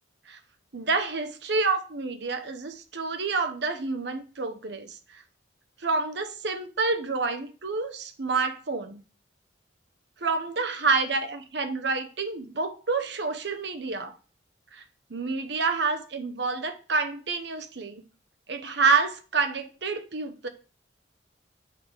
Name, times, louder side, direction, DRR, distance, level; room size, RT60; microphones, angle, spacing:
voice 1, 0.7-5.0 5.8-9.0 10.2-14.1 14.7-14.8 15.1-18.0 18.5-20.5, right 4 dB, 60° right, 0.9 m, -28 dB
7.7 x 3.3 x 6.2 m
head